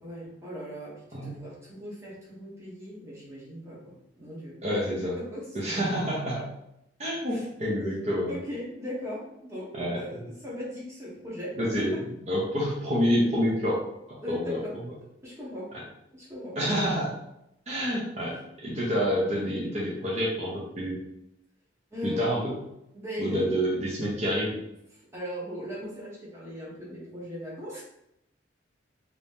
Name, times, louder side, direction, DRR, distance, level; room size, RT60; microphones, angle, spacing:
voice 1, 0.0-4.6 5.1-5.6 7.3-8.0 8.3-11.6 14.2-14.7 15.2-15.7 16.1-16.6 18.3-18.4 21.9-22.3 22.9-23.5 24.9-27.8, equal, 15° right, -6 dB, 1.1 m, -38 dB
voice 2, 4.6-5.2 5.5-6.5 7.0-8.4 9.7-10.0 11.6-11.9 12.3-13.8 14.3-14.6 16.6-17.2 17.7-21.0 22.0-22.5 23.2-24.6, equal, 35° right, -5 dB, 0.7 m, -28 dB
3.0 x 2.7 x 3.4 m, 0.82 s
head